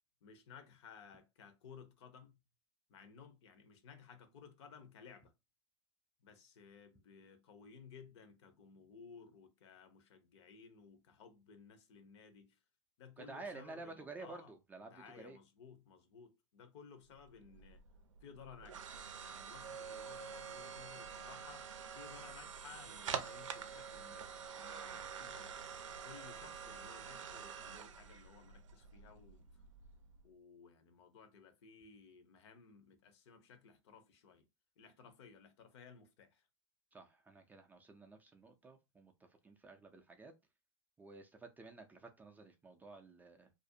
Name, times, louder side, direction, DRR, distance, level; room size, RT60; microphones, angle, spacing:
voice 1, 0.2-2.4 2.9-5.3 6.2-12.6 13.0-14.5 14.9-17.8 18.2-19.0 19.2-25.6 26.0-29.6 30.2-34.5 34.8-36.5, left 6 dB, 60° left, 0.7 m, -58 dB
voice 2, 13.2-15.4 36.9-40.3 41.0-43.5, right 3 dB, 10° right, 0.3 m, -52 dB
sound 1, 17.2-30.2, right 7 dB, 85° right, 0.5 m, -47 dB
2.5 x 2.0 x 2.6 m
hypercardioid pair, 115°, 16 cm